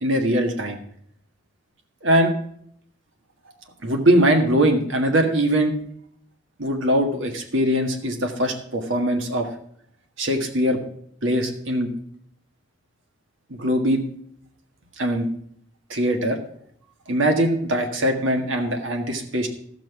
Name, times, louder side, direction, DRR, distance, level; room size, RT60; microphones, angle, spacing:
voice 1, 0.0-0.8 2.0-2.3 3.8-5.7 6.6-9.5 10.2-10.8 11.2-11.9 13.5-14.0 15.0-15.2 15.9-16.4 17.1-19.5, right 1 dB, 80° right, 4 dB, 1.8 m, -21 dB
14.0 x 6.1 x 5.9 m, 0.67 s
head